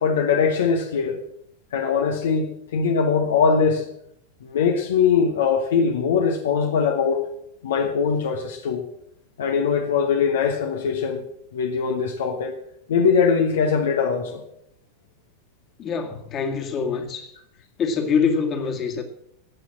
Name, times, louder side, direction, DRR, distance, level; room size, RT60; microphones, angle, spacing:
voice 1, 0.0-1.2 1.7-3.9 4.4-7.2 7.6-8.8 9.4-11.2 11.5-12.6 12.9-14.4, left 6 dB, 60° left, 1.2 m, -21 dB
voice 2, 15.8-17.3 17.8-19.0, left 5 dB, 30° left, 2.0 m, -24 dB
17.5 x 6.2 x 7.4 m
figure-of-eight pair, 90°, 0 cm